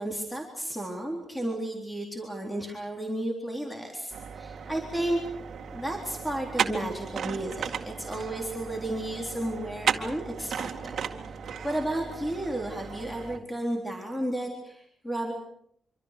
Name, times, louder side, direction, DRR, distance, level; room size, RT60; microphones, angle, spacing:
voice 1, 0.0-5.2 5.7-11.0 11.6-15.3, right 1 dB, 5° left, 1 dB, 3.8 m, -33 dB
sound 1, 4.1-13.4, right 7 dB, 65° right, 2.1 m, -35 dB
26.0 x 25.0 x 6.7 m, 0.70 s
wide cardioid pair, 140°, 0 cm